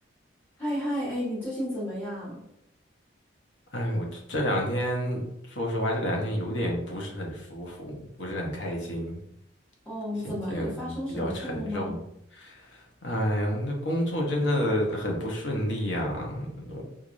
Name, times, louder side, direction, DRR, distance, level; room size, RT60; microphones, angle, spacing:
voice 1, 0.6-2.4 9.8-12.0, equal, 10° left, -9 dB, 1.3 m, -32 dB
voice 2, 3.7-5.2 5.5-9.2 10.2-12.0 12.4-16.8, equal, 75° left, 0 dB, 0.9 m, -30 dB
4.6 x 2.6 x 2.5 m, 0.76 s
head